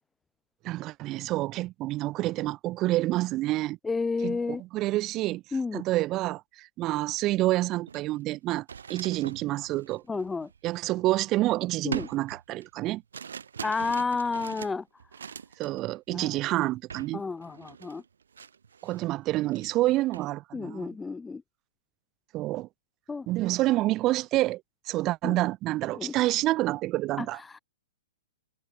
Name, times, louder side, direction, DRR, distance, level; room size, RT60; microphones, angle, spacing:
voice 1, 0.6-3.8 4.2-5.4 5.7-10.0 10.6-13.0 15.6-17.2 18.8-21.0 22.3-22.7 23.3-27.4, right 17 dB, 35° right, 1.4 m, -28 dB
voice 2, 3.8-4.6 5.5-5.8 10.1-10.5 11.8-12.1 13.6-14.8 16.1-16.3 17.1-18.0 20.5-21.4 23.1-23.3 25.2-25.4 25.9-26.1 27.2-27.6, left 4 dB, 10° left, 0.3 m, -31 dB
sound 1, 7.2-7.4 7.8-11.4 11.9-15.8 16.1-16.4 16.9-17.2 17.4-19.1 19.4-20.3, right 7 dB, 80° right, 6.0 m, -43 dB
hypercardioid pair, 120°, 0 cm